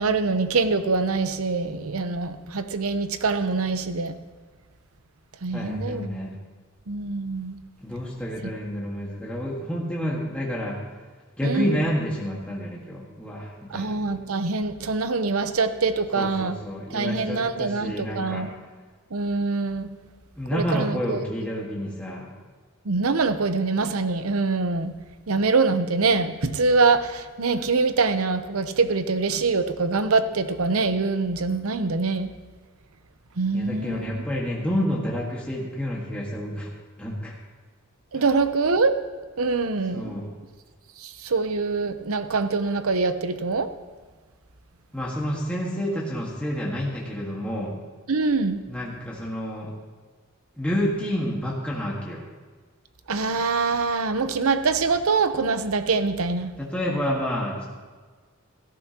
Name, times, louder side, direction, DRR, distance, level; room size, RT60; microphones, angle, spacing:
voice 1, 0.0-4.1 5.4-6.1 6.9-7.6 11.4-11.8 13.7-16.6 16.9-18.5 19.1-19.9 20.5-21.2 22.9-24.9 25.3-32.3 33.4-34.2 38.1-39.0 39.4-40.1 41.2-43.7 48.1-48.6 53.1-56.5, right 4 dB, 80° right, 10 dB, 0.8 m, -24 dB
voice 2, 5.5-6.3 7.8-10.8 11.4-13.9 16.2-18.5 20.4-22.3 33.5-36.7 37.0-37.3 38.2-38.3 39.9-40.3 44.9-47.7 48.7-49.7 50.6-52.2 56.6-57.7, equal, 5° left, -5 dB, 1.6 m, -29 dB
17.0 x 13.5 x 2.9 m, 1.4 s
head